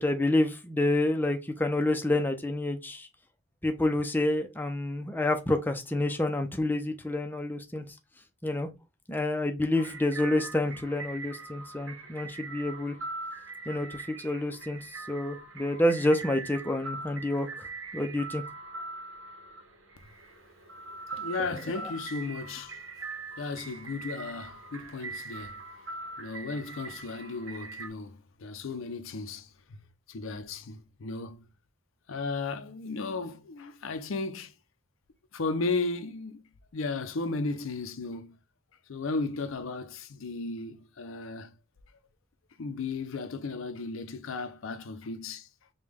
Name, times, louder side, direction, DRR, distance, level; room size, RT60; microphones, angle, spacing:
voice 1, 0.0-3.1 3.6-7.8 8.4-8.7 9.1-13.0 13.7-18.4, left 1 dB, 10° left, 0.5 m, -28 dB
sound 1, 9.7-27.9, right 3 dB, 70° right, 1.0 m, -42 dB
voice 2, 21.2-22.8 23.4-25.6 26.2-29.8 30.1-31.4 32.1-34.5 35.3-36.4 36.7-38.4 38.9-41.5 42.6-45.5, left 3 dB, 70° left, 0.5 m, -35 dB
5.2 x 2.3 x 3.4 m
head